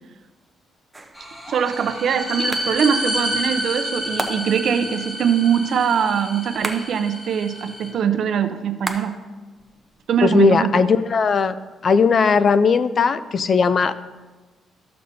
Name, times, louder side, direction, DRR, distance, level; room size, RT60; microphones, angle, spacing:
sound 1, 0.9-1.3 2.5-2.8 4.2-4.7 6.6-7.1 8.8-9.3 9.6-10.6, right 2 dB, 15° right, 0.7 m, -32 dB
sound 2, 1.2-7.9, equal, 10° left, 2.4 m, -29 dB
voice 1, 1.5-9.1 10.1-10.7, right 7 dB, 65° right, 9 dB, 0.6 m, -22 dB
voice 2, 10.2-11.5 11.8-13.9, left 5 dB, 45° left, 14 dB, 0.4 m, -17 dB
13.5 x 6.6 x 2.7 m, 1.2 s
cardioid pair, 90°, 0 cm